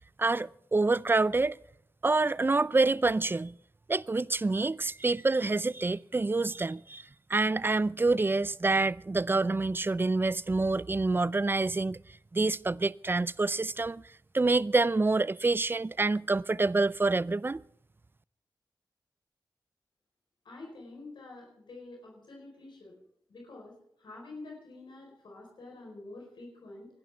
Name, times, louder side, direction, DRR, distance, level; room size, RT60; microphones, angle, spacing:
voice 1, 0.2-1.6 2.0-3.5 3.9-7.0 7.3-12.0 12.3-14.0 14.3-17.6, right 3 dB, 30° right, 0.4 m, -27 dB
voice 2, 20.4-23.0 23.3-26.9, left 2 dB, 90° left, 4.3 m, -47 dB
28.0 x 12.0 x 3.4 m
cardioid pair, 65°, 8 cm